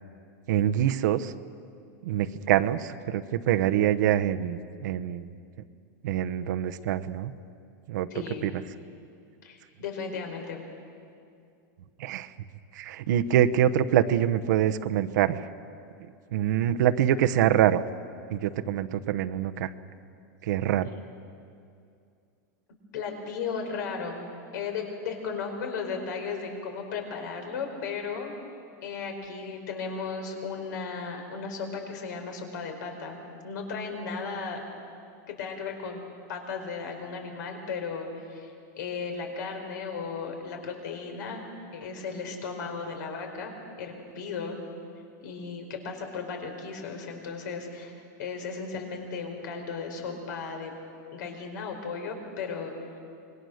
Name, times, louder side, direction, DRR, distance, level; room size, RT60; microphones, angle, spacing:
voice 1, 0.5-1.3 2.0-5.3 6.0-7.3 7.9-8.1 8.4-8.5 12.0-12.3 12.7-15.5 16.3-17.8 18.3-19.7 20.4-20.9, right 11 dB, 65° right, 9 dB, 0.9 m, -25 dB
voice 2, 8.1-8.5 9.4-10.6 22.9-28.4 28.8-34.6 35.3-36.0 36.3-41.4 41.7-43.5 43.8-44.6 45.2-47.9 48.2-50.7 51.1-53.0, left 5 dB, 70° left, 4 dB, 4.8 m, -35 dB
26.0 x 22.0 x 6.5 m, 2.4 s
supercardioid pair, 150°, 10 cm